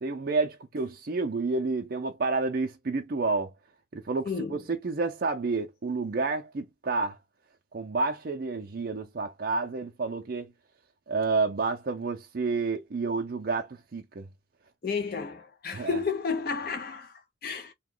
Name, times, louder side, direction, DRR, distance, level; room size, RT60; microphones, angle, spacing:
voice 1, 0.0-3.5 3.9-7.2 7.7-10.5 11.1-14.3 15.7-16.0, right 3 dB, 50° right, 0.5 m, -30 dB
voice 2, 4.2-4.6 14.8-17.7, left 5 dB, 50° left, 0.5 m, -32 dB
2.9 x 2.2 x 3.7 m
head